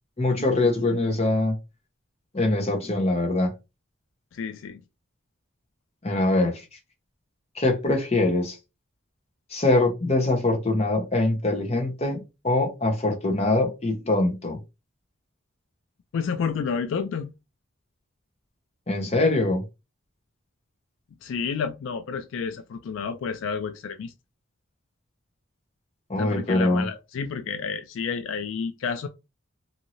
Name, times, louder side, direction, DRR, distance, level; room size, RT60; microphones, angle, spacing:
voice 1, 0.2-1.6 2.3-3.5 6.0-6.6 7.5-8.6 9.5-14.6 18.9-19.6 26.1-26.9, left 2 dB, 30° left, 0.8 m, -23 dB
voice 2, 4.3-4.8 16.1-17.3 21.2-24.1 26.2-29.1, left 6 dB, 75° left, 0.3 m, -30 dB
2.7 x 2.6 x 3.0 m
head